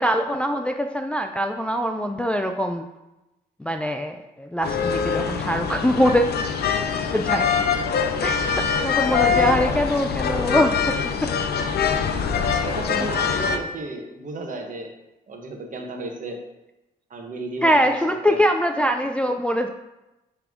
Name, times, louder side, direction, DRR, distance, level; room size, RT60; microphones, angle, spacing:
voice 1, 0.0-2.9 3.6-6.3 7.1-7.6 8.2-11.3 17.6-19.7, equal, 5° left, 5 dB, 0.3 m, -23 dB
sound 1, 4.6-13.6, left 6 dB, 70° left, 0.6 m, -23 dB
voice 2, 9.1-9.7 12.4-14.9 15.3-16.4 17.1-17.9 18.3-18.4, right 2 dB, 50° right, 2 dB, 1.2 m, -33 dB
9.3 x 3.5 x 3.7 m, 0.97 s
cardioid pair, 110°, 17 cm